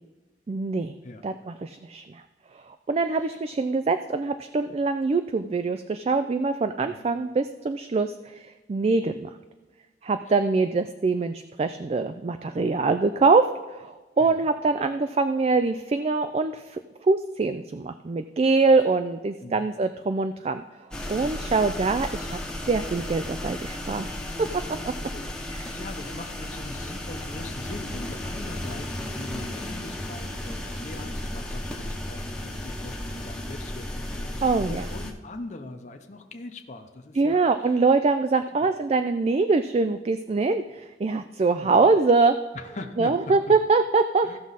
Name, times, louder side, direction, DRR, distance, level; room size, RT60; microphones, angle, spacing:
voice 1, 0.5-0.9 1.2-2.2 2.9-9.3 10.0-13.5 13.7-20.6 21.1-22.4 22.7-24.1 25.5-25.7 34.4-34.8 37.2-42.4 43.0-44.4, right 3 dB, 35° right, 10 dB, 0.3 m, -24 dB
sound 1, 20.9-35.1, left 1 dB, 5° left, 1.0 m, -34 dB
voice 2, 25.0-37.8 38.6-38.7 41.6-41.8 42.5-43.5 44.2-44.4, left 2 dB, 40° left, 4 dB, 0.8 m, -41 dB
15.5 x 6.2 x 4.1 m, 1.3 s
head